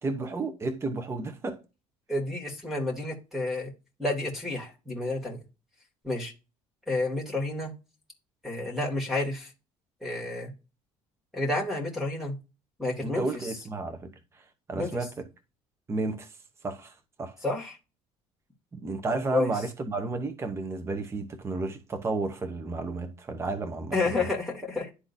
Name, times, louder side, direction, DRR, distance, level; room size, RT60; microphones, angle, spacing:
voice 1, 0.0-1.6 13.0-14.1 14.7-15.3 15.9-16.3 16.6-17.4 18.7-24.2, right 3 dB, 20° right, 0.9 m, -32 dB
voice 2, 2.1-3.7 4.0-5.4 6.0-6.3 6.9-7.7 8.4-9.5 10.0-10.5 11.3-12.3 12.8-13.5 14.7-15.0 17.4-17.8 19.1-19.5 23.9-24.9, left 2 dB, ahead, 2.3 m, -30 dB
11.5 x 3.8 x 2.6 m
cardioid pair, 130°, 12 cm